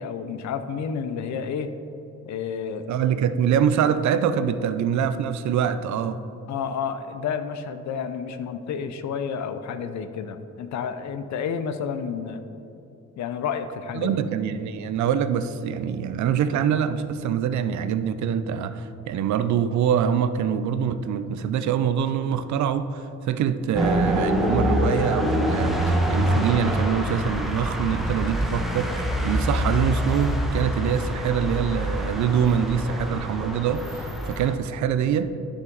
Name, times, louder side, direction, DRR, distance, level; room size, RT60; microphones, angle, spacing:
voice 1, 0.0-1.7 2.3-2.9 6.5-12.4 13.2-14.1, left 6 dB, 65° left, 10 dB, 0.7 m, -30 dB
voice 2, 2.9-6.2 13.9-35.3, right 8 dB, 70° right, 12 dB, 0.5 m, -24 dB
sound 1, 23.7-34.5, equal, ahead, 1.0 m, -25 dB
10.5 x 6.3 x 3.9 m, 2.9 s
cardioid pair, 90°, 30 cm